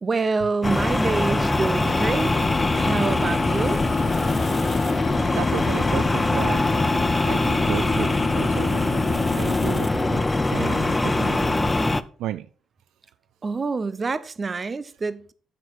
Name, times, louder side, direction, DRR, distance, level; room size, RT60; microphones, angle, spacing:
voice 1, 0.0-2.3 2.8-3.8 13.4-15.3, right 4 dB, 35° right, 0.6 m, -26 dB
sound 1, 0.6-12.0, left 2 dB, 15° left, 0.5 m, -22 dB
sound 2, 1.9-11.8, left 7 dB, 80° left, 0.9 m, -31 dB
voice 2, 5.3-6.6 7.3-11.7 12.2-12.5, right 12 dB, 85° right, 0.3 m, -33 dB
8.9 x 6.6 x 4.7 m
cardioid pair, 90°, 0 cm